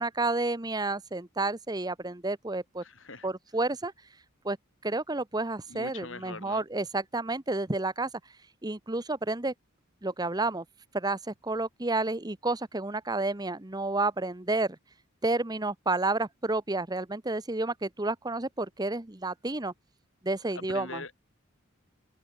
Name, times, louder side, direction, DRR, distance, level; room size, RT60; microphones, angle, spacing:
voice 1, 0.0-2.8 3.2-3.9 4.4-4.6 4.8-8.1 8.6-9.5 10.0-10.6 10.9-14.8 15.2-19.7 20.2-21.0, right 2 dB, 20° right, 1.0 m, -30 dB
voice 2, 2.8-3.3 5.7-6.6 20.7-21.1, left 3 dB, 65° left, 7.5 m, -42 dB
head